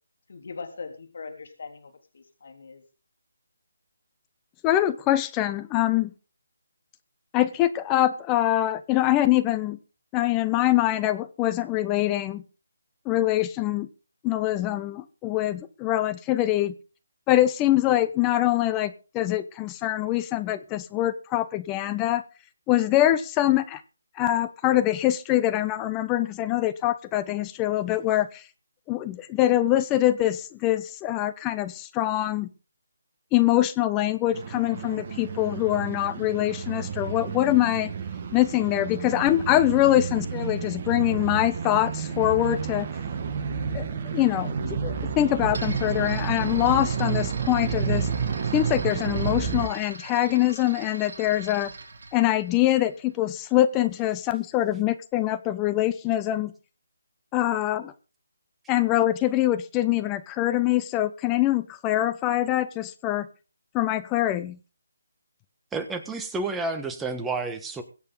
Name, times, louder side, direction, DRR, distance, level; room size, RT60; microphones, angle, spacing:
voice 1, 0.3-2.8, left 4 dB, 60° left, 5 dB, 3.5 m, -41 dB
voice 2, 4.6-6.1 7.3-9.8 10.1-12.4 13.0-13.9 14.2-16.7 17.3-22.2 22.7-23.8 24.2-28.4 28.9-32.5 33.3-37.9 38.3-42.9 43.7-48.1 48.5-51.7 52.1-56.5 57.3-57.9 58.7-63.3 63.7-64.6, left 14 dB, 15° left, 11 dB, 0.9 m, -24 dB
sound 1, 34.3-49.7, right 6 dB, 40° right, 1.9 m, -30 dB
sound 2, 45.5-53.3, right 3 dB, 60° right, 5.8 m, -42 dB
voice 3, 65.7-67.8, right 3 dB, 5° right, 6 dB, 1.5 m, -30 dB
23.0 x 8.3 x 4.0 m, 0.33 s
figure-of-eight pair, 155°, 0 cm